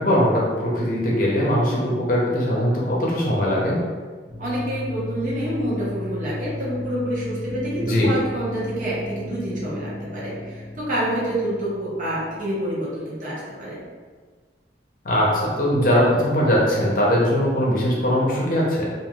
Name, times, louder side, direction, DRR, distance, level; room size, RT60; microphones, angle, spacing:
voice 1, 0.0-3.8 7.8-8.1 15.0-18.9, equal, 50° left, -4 dB, 0.7 m, -20 dB
sound 1, 4.3-13.0, left 2 dB, 25° left, 0.9 m, -34 dB
voice 2, 4.4-13.8, right 1 dB, 45° right, -7 dB, 0.9 m, -27 dB
3.3 x 2.5 x 2.3 m, 1.5 s
head